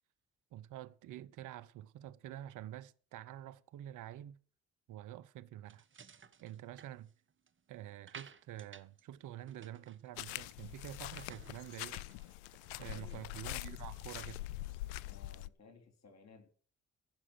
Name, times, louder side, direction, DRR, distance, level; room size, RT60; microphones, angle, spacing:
voice 1, 0.5-4.4 4.9-5.8 6.4-7.1 7.7-12.0 12.8-14.4, right 12 dB, 65° right, 0.9 m, -48 dB
sound 1, 5.7-7.6 8.1-9.0 9.3-10.6 11.0-13.2, right 6 dB, 35° right, 1.4 m, -56 dB
sound 2, 10.2-15.5, left 17 dB, 80° left, 0.5 m, -44 dB
voice 2, 12.9-13.3 15.0-16.5, left 4 dB, 50° left, 3.2 m, -59 dB
15.0 x 6.2 x 7.8 m
hypercardioid pair, 45°, 33 cm